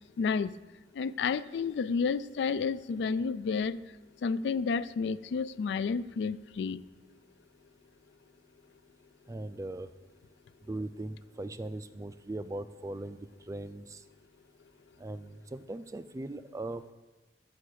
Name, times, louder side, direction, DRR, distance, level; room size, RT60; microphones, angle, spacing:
voice 1, 0.2-0.5 1.0-3.8 4.2-6.8, left 5 dB, 70° left, 16 dB, 0.3 m, -30 dB
voice 2, 9.3-9.9 10.7-13.2 13.5-14.0 15.0-16.9, right 2 dB, 20° right, 13 dB, 0.3 m, -39 dB
8.4 x 6.8 x 6.4 m, 1.2 s
head